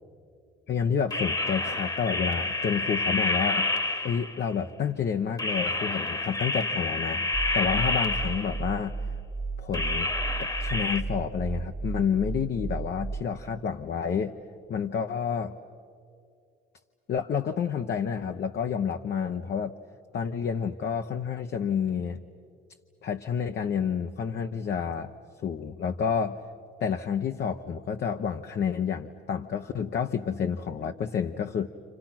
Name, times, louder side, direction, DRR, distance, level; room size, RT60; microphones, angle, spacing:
voice 1, 0.7-3.7 4.0-9.0 9.6-10.1 10.4-14.3 14.7-15.6 17.1-19.8 20.1-22.2 23.0-25.1 25.4-26.4 26.8-31.7, left 7 dB, 60° left, 5 dB, 0.9 m, -29 dB
sound 1, 1.1-4.5 5.4-8.8 9.7-11.0, left 2 dB, 20° left, 1.3 m, -29 dB
sound 2, 7.3-13.2, right 4 dB, 15° right, 1.0 m, -34 dB
29.5 x 28.5 x 5.9 m, 2.4 s
cardioid pair, 90°, 20 cm